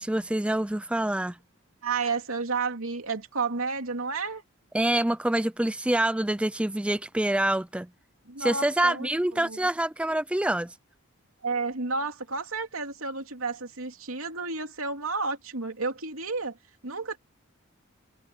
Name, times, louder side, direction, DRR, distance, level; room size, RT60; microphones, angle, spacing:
voice 1, 0.0-1.4 4.7-7.9 8.4-10.7, right 1 dB, 5° right, 0.4 m, -26 dB
voice 2, 1.8-4.4 8.3-9.6 11.4-16.6 16.8-17.2, right 4 dB, 80° right, 2.9 m, -31 dB
head